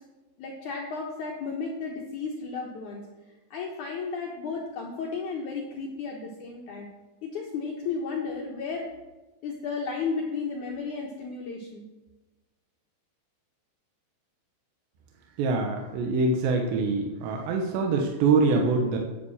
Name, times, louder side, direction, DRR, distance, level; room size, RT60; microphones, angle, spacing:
voice 1, 0.4-3.1 3.5-6.9 7.2-8.9 9.4-11.8, left 4 dB, 80° left, -1 dB, 1.7 m, -33 dB
voice 2, 15.4-19.0, right 3 dB, 75° right, 2 dB, 3.2 m, -24 dB
9.7 x 8.3 x 7.1 m, 1.1 s
omnidirectional pair, 5.3 m